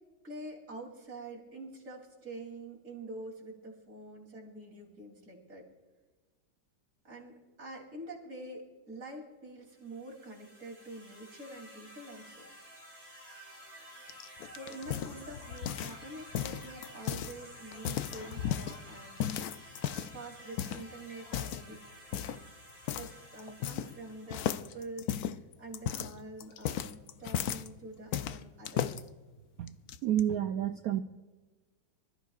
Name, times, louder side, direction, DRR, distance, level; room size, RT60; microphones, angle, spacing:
voice 1, 0.2-5.7 7.0-12.5 14.5-19.3 19.7-19.8 20.1-22.4 22.9-29.1, right 2 dB, 45° right, -2 dB, 3.4 m, -46 dB
sound 1, 9.7-24.8, equal, 40° left, 5.2 m, -52 dB
sound 2, 14.1-16.0 16.3-17.3 17.7-18.8 19.2-20.2 20.6-20.8 21.3-21.7 22.1-22.4 22.9-23.1 23.4-24.0 24.3-27.7 28.1-29.0 29.7-30.2, left 10 dB, 70° left, 0.9 m, -35 dB
voice 2, 30.0-31.0, right 11 dB, 70° right, 8 dB, 0.9 m, -29 dB
25.0 x 14.0 x 2.4 m, 1.3 s
omnidirectional pair, 1.9 m